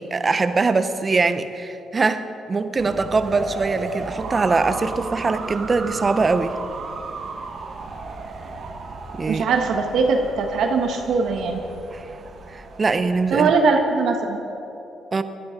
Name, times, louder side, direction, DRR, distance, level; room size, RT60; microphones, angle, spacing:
voice 1, 0.0-6.5 9.1-9.4 11.9-12.1 12.5-13.5 15.1-15.2, right 4 dB, 30° right, 10 dB, 0.9 m, -22 dB
sound 1, 2.8-13.6, right 4 dB, 50° right, 1.6 m, -35 dB
voice 2, 9.3-11.6 13.3-14.4, right 4 dB, 70° right, 3 dB, 1.5 m, -21 dB
20.5 x 11.5 x 5.3 m, 2.9 s
cardioid pair, 90°, 0 cm